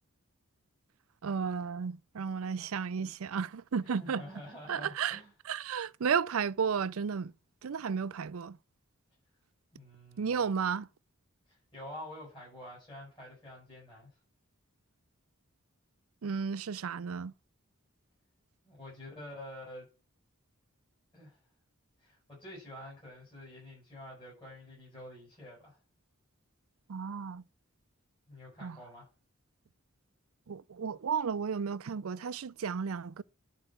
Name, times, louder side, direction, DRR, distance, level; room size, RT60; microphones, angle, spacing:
voice 1, 1.2-4.2 4.7-7.3 7.6-8.6 10.2-10.9 16.2-17.3 26.9-27.4 28.6-28.8 30.5-33.2, right 6 dB, 80° right, 0.5 m, -33 dB
voice 2, 3.8-5.3 9.7-10.5 11.5-14.1 18.6-19.9 21.1-21.4 22.0-25.8 28.3-29.1, left 1 dB, 25° left, 7.4 m, -48 dB
11.0 x 4.8 x 7.8 m
head